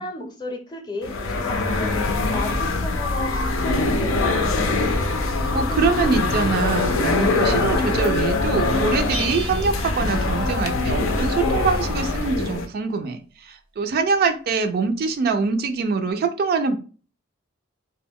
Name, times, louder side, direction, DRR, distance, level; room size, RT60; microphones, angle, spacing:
voice 1, 0.0-4.8, left 2 dB, 20° left, 2 dB, 0.6 m, -34 dB
sound 1, 1.0-12.6, left 3 dB, 90° left, 0.5 m, -23 dB
voice 2, 5.2-16.8, right 4 dB, 50° right, 6 dB, 0.3 m, -24 dB
Bell, 9.1-10.9, right 3 dB, 85° right, 0.7 m, -35 dB
2.1 x 2.1 x 3.5 m, 0.37 s
head